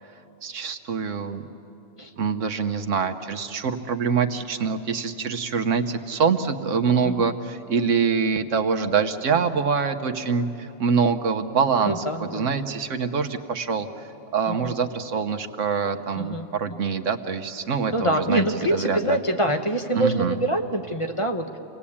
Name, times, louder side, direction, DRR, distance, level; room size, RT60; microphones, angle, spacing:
voice 1, 0.4-1.4 2.2-13.9 14.3-19.2 19.9-20.4, right 5 dB, 85° right, 8 dB, 1.4 m, -25 dB
voice 2, 11.9-12.5 14.5-14.6 16.2-16.8 17.9-21.6, right 1 dB, 30° left, 5 dB, 1.0 m, -25 dB
28.5 x 19.5 x 8.6 m, 2.9 s
omnidirectional pair, 1.3 m